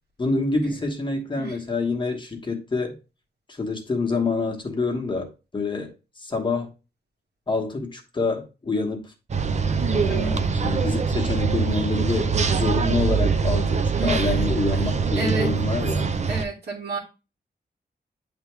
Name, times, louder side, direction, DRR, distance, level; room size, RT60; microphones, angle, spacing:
voice 1, 0.2-2.9 3.5-5.9 6.2-6.7 7.5-9.1 9.9-16.1, left 3 dB, 30° left, 1.2 m, -27 dB
sound 1, 9.3-16.4, right 5 dB, 45° right, 0.5 m, -23 dB
voice 2, 14.0-14.4 14.7-14.8 15.2-15.5 16.3-17.0, right 2 dB, 70° right, 1.9 m, -30 dB
9.2 x 3.5 x 3.1 m
wide cardioid pair, 175°, 17 cm